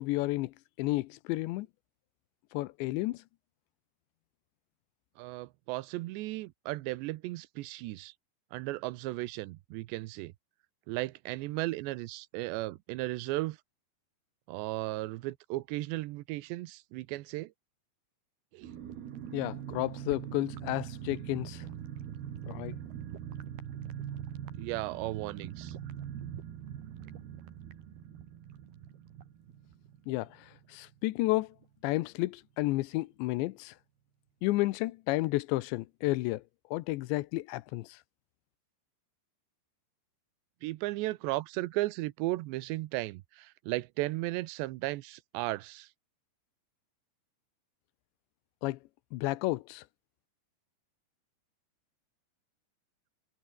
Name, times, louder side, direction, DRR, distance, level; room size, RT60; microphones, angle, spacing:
voice 1, 0.0-1.7 2.5-3.2 19.3-21.7 22.5-22.8 30.1-31.5 31.8-33.8 34.4-36.4 36.7-38.0 48.6-48.8 49.1-49.9, left 19 dB, 85° left, 3.0 m, -32 dB
voice 2, 5.2-8.1 8.5-10.3 10.9-13.6 14.5-17.5 18.5-18.7 24.6-25.8 40.6-45.9, right 19 dB, 80° right, 3.0 m, -35 dB
sound 1, 18.6-31.0 31.2-31.3 31.6-31.9, right 10 dB, 65° right, 4.1 m, -42 dB
omnidirectional pair, 5.1 m